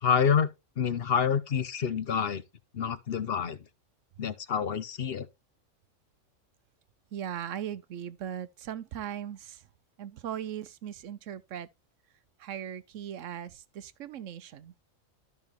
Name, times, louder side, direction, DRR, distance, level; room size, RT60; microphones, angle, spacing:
voice 1, 0.0-0.5 0.8-2.4 2.7-3.6 4.2-5.3, left 7 dB, 55° left, 0.9 m, -27 dB
voice 2, 7.1-9.7 10.0-11.7 12.4-14.7, right 10 dB, 75° right, 1.0 m, -38 dB
12.5 x 6.1 x 2.9 m
omnidirectional pair, 1.3 m